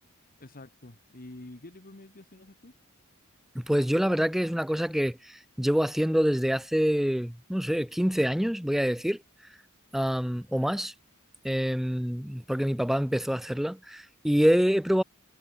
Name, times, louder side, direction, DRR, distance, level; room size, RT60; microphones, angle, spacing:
voice 1, 0.4-2.7, left 2 dB, 40° left, 1.7 m, -47 dB
voice 2, 3.5-9.2 9.9-10.9 11.4-15.0, equal, ahead, 0.5 m, -26 dB
head